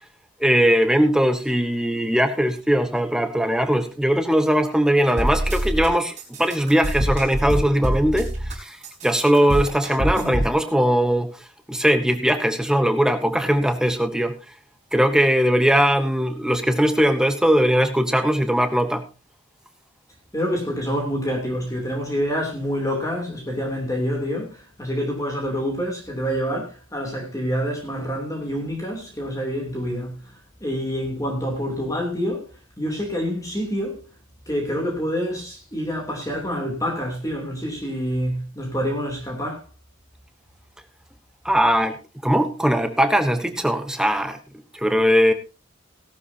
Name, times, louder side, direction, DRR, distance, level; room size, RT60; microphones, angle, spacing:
voice 1, 0.4-8.8 9.0-11.3 11.7-14.3 14.9-19.0 41.4-44.4 44.7-45.3, equal, 5° right, 1.1 m, -20 dB
sound 1, 5.2-5.9 6.2-8.5 8.8-10.5, equal, 35° right, 4.3 m, -25 dB
voice 2, 20.3-30.2 30.6-32.5 32.8-34.0 34.5-39.6, equal, 15° left, 2.9 m, -27 dB
17.0 x 12.0 x 2.8 m
head